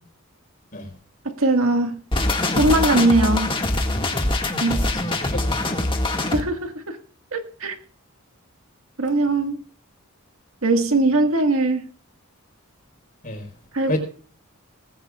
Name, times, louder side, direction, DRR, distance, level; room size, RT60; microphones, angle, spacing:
voice 1, 1.2-2.0 2.5-3.5 4.6-4.9 6.3-7.0 7.3-7.7 9.0-9.6 10.6-11.8 13.7-14.0, right 2 dB, 75° right, 1.8 m, -20 dB
sound 1, 2.1-6.4, left 2 dB, 25° left, 1.9 m, -23 dB
voice 2, 4.7-6.0 13.2-13.5 13.9-14.0, left 1 dB, 40° left, 4.3 m, -31 dB
19.5 x 16.0 x 2.4 m
head